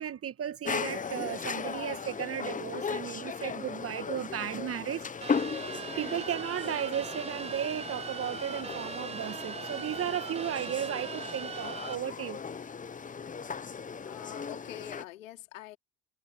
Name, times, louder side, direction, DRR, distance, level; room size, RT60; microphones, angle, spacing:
voice 1, 0.0-5.5 6.0-12.4, right 10 dB, 35° right, 1.9 m, -35 dB
sound 1, 0.6-15.1, left 6 dB, 20° left, 1.2 m, -37 dB
sound 2, 5.2-12.0, right 5 dB, 15° right, 0.8 m, -40 dB
voice 2, 14.0-15.8, left 15 dB, 75° left, 3.2 m, -45 dB
hypercardioid pair, 75°, 39 cm